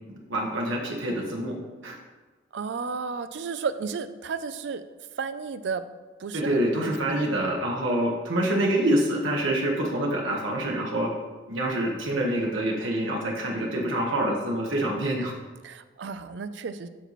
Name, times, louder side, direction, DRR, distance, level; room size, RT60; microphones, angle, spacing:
voice 1, 0.3-1.5 1.8-2.0 6.3-11.1 11.5-15.3, right 1 dB, 85° right, -1 dB, 1.3 m, -26 dB
voice 2, 2.5-4.8 5.2-5.8 6.2-6.5 6.8-6.9 15.6-16.9, right 5 dB, 65° right, 12 dB, 0.4 m, -32 dB
12.0 x 4.1 x 3.1 m, 1.3 s
head